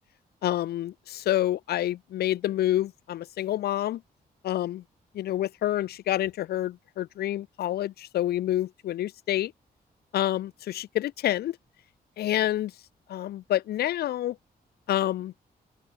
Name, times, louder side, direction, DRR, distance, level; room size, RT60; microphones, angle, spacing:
voice 1, 0.4-4.0 4.4-4.8 5.1-9.5 10.1-11.6 12.2-12.7 13.1-14.4 14.9-15.3, left 13 dB, 90° left, 0.7 m, -28 dB
open air
wide cardioid pair, 150°, 16 cm